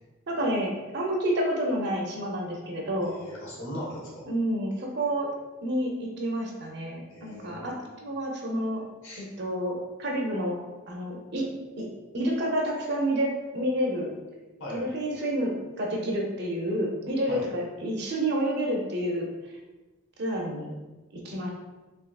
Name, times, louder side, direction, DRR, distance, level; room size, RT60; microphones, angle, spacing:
voice 1, 0.3-3.2 4.3-5.3 5.6-8.8 9.2-10.6 10.9-11.5 11.8-11.9 12.1-14.1 14.7-19.6 20.2-20.7 21.1-21.5, right 1 dB, 50° right, 0 dB, 0.6 m, -29 dB
voice 2, 3.0-4.3 7.1-7.8 9.0-9.3 14.6-14.8 17.3-17.5, equal, 65° left, -5 dB, 1.0 m, -39 dB
3.5 x 2.7 x 2.3 m, 1.2 s
head